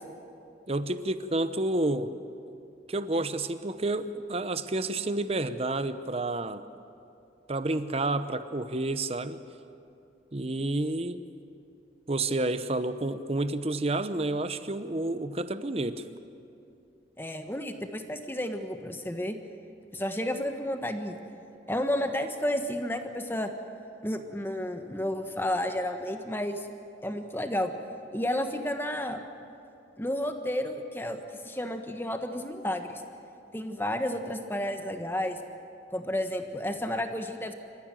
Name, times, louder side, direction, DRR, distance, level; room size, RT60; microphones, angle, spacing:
voice 1, 0.7-2.1 2.9-6.6 7.5-9.4 10.3-11.2 12.1-16.1, right 2 dB, 35° right, 12 dB, 0.8 m, -30 dB
voice 2, 17.2-19.4 19.9-21.2 21.7-23.5 24.0-26.7 27.0-27.7 28.1-29.2 30.0-33.0 33.5-35.4 35.9-37.5, left 1 dB, 10° left, 6 dB, 1.4 m, -31 dB
27.0 x 15.0 x 9.1 m, 2.6 s
head